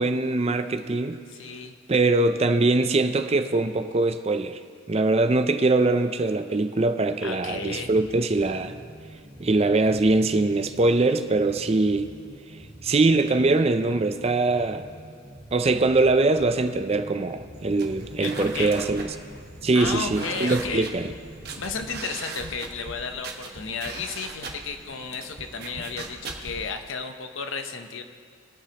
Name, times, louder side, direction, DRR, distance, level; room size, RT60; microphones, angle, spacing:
voice 1, 0.0-1.2 1.9-4.6 4.9-8.8 9.4-12.1 12.8-14.8 15.5-19.1 19.6-21.1, right 2 dB, 30° right, 9 dB, 0.4 m, -22 dB
voice 2, 1.3-1.8 7.2-7.9 18.2-18.7 19.7-20.9 21.6-28.0, left 5 dB, 60° left, 7 dB, 0.8 m, -33 dB
sound 1, 7.4-21.9, right 1 dB, ahead, 2.7 m, -46 dB
sound 2, 17.5-26.7, right 3 dB, 45° right, 1.1 m, -39 dB
23.0 x 8.0 x 2.9 m, 2.1 s
head